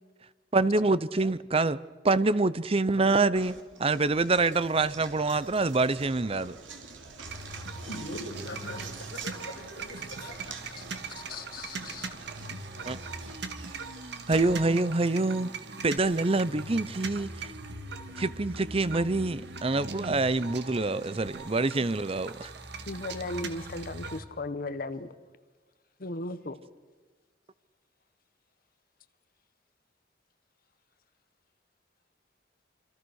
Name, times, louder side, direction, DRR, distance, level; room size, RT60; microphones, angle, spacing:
voice 1, 0.5-1.8 2.0-6.6 12.9-13.0 14.3-15.5 15.8-17.5 18.2-22.5, right 3 dB, 30° right, 0.7 m, -26 dB
Knock, 3.3-15.5, right 4 dB, 85° right, 3.5 m, -47 dB
sound 1, 7.2-24.2, right 3 dB, 60° right, 2.0 m, -40 dB
voice 2, 7.9-8.8 9.1-10.5 11.0-11.4, left 1 dB, 75° left, 4.8 m, -41 dB
voice 3, 11.2-12.1 22.9-25.1 26.0-26.6, left 2 dB, 50° left, 1.1 m, -36 dB
27.0 x 26.5 x 6.4 m
head